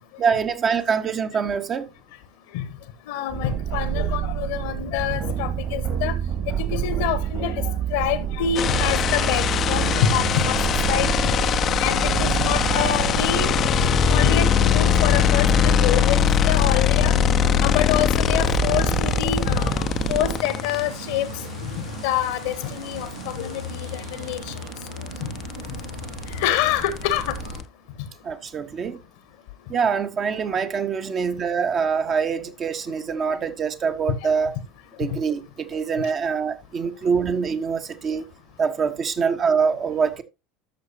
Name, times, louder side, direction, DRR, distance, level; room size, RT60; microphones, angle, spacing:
voice 1, 0.2-1.9 28.2-29.0 29.7-34.6 35.0-38.3 38.6-40.2, right 6 dB, 35° right, 1.0 m, -24 dB
voice 2, 3.1-6.1 6.5-10.6 10.9-11.3 11.8-13.6 14.1-17.1 17.6-21.3 21.6-24.6 26.3-27.4 34.1-34.2 35.1-35.2, left 10 dB, 60° left, 1.1 m, -26 dB
sound 1, 3.3-20.4, right 9 dB, 50° right, 2.4 m, -27 dB
sound 2, 8.6-20.8 22.9-23.0 23.3-27.6, left 10 dB, 35° left, 0.6 m, -22 dB
sound 3, 9.2-27.6, right 1 dB, 80° right, 2.1 m, -36 dB
13.0 x 6.5 x 2.8 m
figure-of-eight pair, 70°, 0 cm